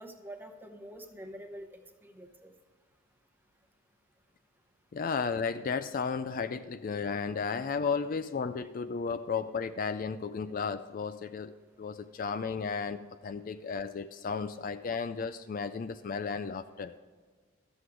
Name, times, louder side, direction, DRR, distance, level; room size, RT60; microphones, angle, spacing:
voice 1, 0.0-2.5, right 1 dB, 10° right, 5 dB, 0.9 m, -46 dB
voice 2, 4.9-16.9, left 5 dB, 40° left, 11 dB, 0.3 m, -34 dB
13.0 x 7.9 x 4.8 m, 1.5 s
head